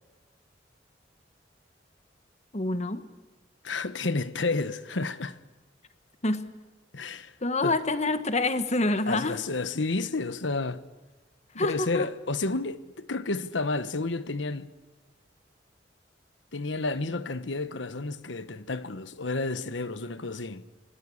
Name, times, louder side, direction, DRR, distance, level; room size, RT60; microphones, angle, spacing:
voice 1, 2.5-3.0 6.2-6.4 7.4-9.4 11.6-12.1, left 2 dB, 40° left, 1.4 m, -27 dB
voice 2, 3.6-5.4 6.9-7.3 7.6-7.7 9.1-10.8 11.5-14.7 16.5-20.6, left 3 dB, 90° left, 1.2 m, -31 dB
26.5 x 20.0 x 8.6 m
head